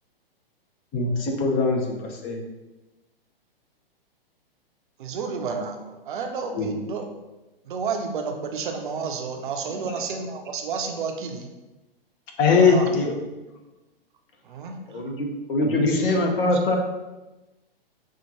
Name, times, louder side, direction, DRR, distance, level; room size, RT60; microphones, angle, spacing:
voice 1, 0.9-2.4 6.6-6.8 12.4-13.1 15.6-15.9, left 4 dB, 25° left, 1 dB, 0.8 m, -21 dB
voice 2, 5.0-7.0 7.6-11.5 12.6-12.9 14.4-14.8, right 5 dB, 55° right, 4 dB, 0.6 m, -31 dB
voice 3, 14.9-16.8, left 1 dB, 65° left, 3 dB, 0.9 m, -23 dB
5.5 x 2.5 x 2.9 m, 1.1 s
figure-of-eight pair, 115°, 30 cm